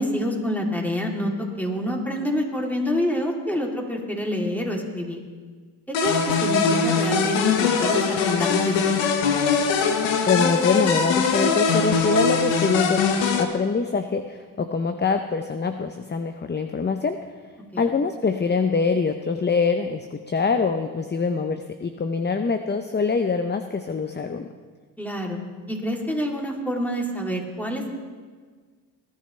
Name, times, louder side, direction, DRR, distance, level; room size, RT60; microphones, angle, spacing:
voice 1, 0.0-5.2 6.0-9.1 17.7-17.9 25.0-25.4 25.7-27.9, equal, 5° left, -1 dB, 3.0 m, -27 dB
sound 1, 5.9-13.4, left 5 dB, 85° left, 1.2 m, -22 dB
voice 2, 10.3-13.0 13.4-17.2 17.8-24.5, left 5 dB, 25° left, 8 dB, 0.7 m, -24 dB
20.5 x 10.5 x 3.3 m, 1.5 s
supercardioid pair, 55°, 44 cm